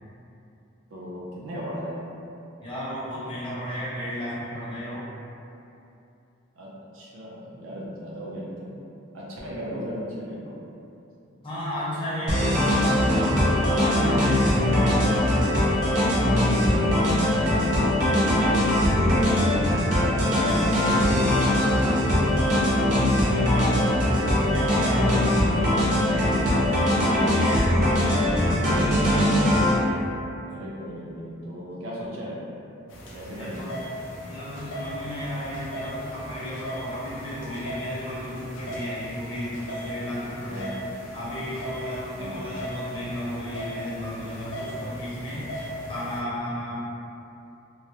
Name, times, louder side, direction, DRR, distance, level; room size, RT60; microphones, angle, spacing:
voice 1, 0.9-2.0 6.6-8.7 9.1-10.4 16.4-17.0 18.0-21.0 30.5-32.5 33.1-33.7 40.5-40.8 42.2-42.5, equal, 85° right, -5 dB, 0.5 m, -35 dB
voice 2, 2.6-5.1 11.4-15.1 20.5-23.7 24.3-26.7 27.2-28.8 33.4-33.7 34.3-40.7 41.1-45.5 45.9-46.8, equal, 25° left, -9 dB, 0.6 m, -34 dB
sound 1, 12.3-29.7, left 1 dB, 40° right, 0.6 m, -21 dB
sound 2, 32.9-46.2, equal, 75° left, 0.4 m, -37 dB
2.3 x 2.0 x 2.8 m, 2.7 s
head